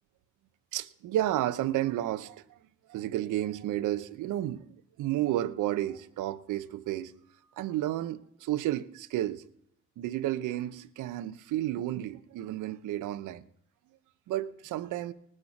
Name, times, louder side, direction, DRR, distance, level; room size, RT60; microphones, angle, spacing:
voice 1, 0.7-2.4 2.9-7.1 7.5-9.4 10.0-13.4 14.3-15.1, right 13 dB, 85° right, 0.9 m, -32 dB
19.5 x 6.7 x 5.9 m
cardioid pair, 90°, 30 cm